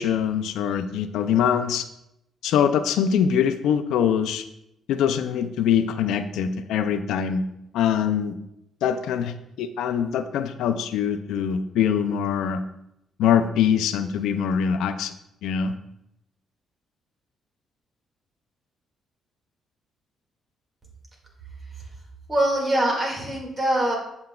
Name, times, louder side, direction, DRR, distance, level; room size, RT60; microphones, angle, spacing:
voice 1, 0.0-1.9 2.4-4.5 4.9-7.4 7.7-8.4 8.8-12.6 13.2-15.1 15.4-15.7, left 8 dB, 85° left, 9 dB, 0.4 m, -23 dB
voice 2, 22.3-24.0, right 1 dB, 30° right, -1 dB, 2.0 m, -23 dB
7.7 x 5.6 x 2.3 m, 0.81 s
cardioid pair, 90°, 0 cm